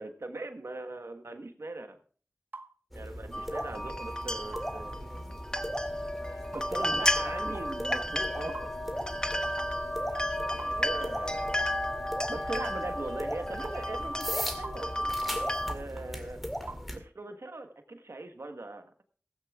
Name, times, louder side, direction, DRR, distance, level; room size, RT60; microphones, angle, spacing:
voice 1, 0.0-2.0 2.9-5.4 6.3-8.7 9.0-9.1 10.1-10.3 10.5-11.8 12.3-16.5 16.9-19.1, right 2 dB, 90° right, 6 dB, 1.3 m, -41 dB
sound 1, 2.5-2.7 3.5-3.7 4.5-4.7 5.6-5.7 6.5-6.7 7.5-7.7 8.5-8.7 9.6-9.8 10.6-10.8 11.6-11.8 12.6-12.8 13.6-13.8 14.6-14.8 15.7-15.9 16.7-16.9, right 2 dB, 45° right, 0.8 m, -43 dB
sound 2, 2.9-17.0, equal, ahead, 2.0 m, -39 dB
sound 3, 3.3-15.7, left 1 dB, 15° left, 1.0 m, -33 dB
16.5 x 15.0 x 2.4 m, 0.43 s
wide cardioid pair, 50°, 5 cm